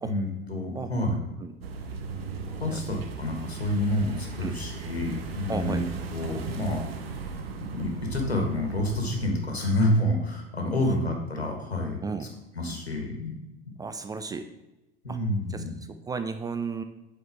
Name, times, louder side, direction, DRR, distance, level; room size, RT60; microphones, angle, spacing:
voice 1, 0.0-1.2 2.6-5.8 6.1-6.9 7.7-12.3 12.5-13.3 15.0-15.7, left 1 dB, 90° left, 2 dB, 1.5 m, -28 dB
sound 1, 1.6-9.3, right 5 dB, 75° right, 0.9 m, -37 dB
voice 2, 5.5-5.9 10.7-11.0 12.0-12.3 13.8-14.5 15.1-15.2 15.5-16.8, right 4 dB, 15° right, 8 dB, 0.3 m, -34 dB
8.0 x 4.5 x 4.5 m, 0.98 s
figure-of-eight pair, 75°, 31 cm